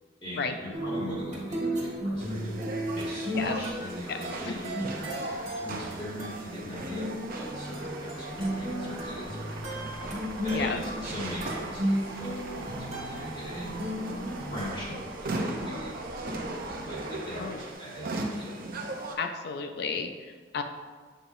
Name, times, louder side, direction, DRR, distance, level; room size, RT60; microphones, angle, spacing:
voice 1, 0.2-2.6 3.0-9.8 10.4-13.7 14.5-16.6 16.8-18.7, equal, 30° left, -8 dB, 1.7 m, -40 dB
sound 1, 0.7-14.6, equal, 40° right, 1.5 m, -34 dB
sound 2, 2.2-19.2, right 2 dB, 55° right, 0.6 m, -39 dB
sound 3, 7.7-17.7, right 2 dB, 80° right, 0.9 m, -45 dB
voice 2, 19.2-20.1 20.5-20.6, left 5 dB, 60° left, 6 dB, 0.4 m, -31 dB
7.7 x 4.9 x 2.6 m, 1.5 s
head